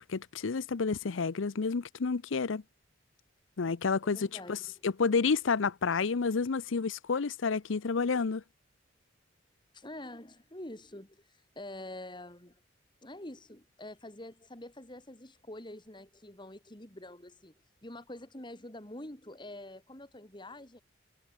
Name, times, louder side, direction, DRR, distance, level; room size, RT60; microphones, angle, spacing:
voice 1, 0.0-2.6 3.6-4.6 4.8-8.4, left 5 dB, 85° left, 0.6 m, -30 dB
voice 2, 4.0-4.7 9.7-12.6 13.0-17.5 17.8-20.8, left 1 dB, 25° left, 3.3 m, -46 dB
head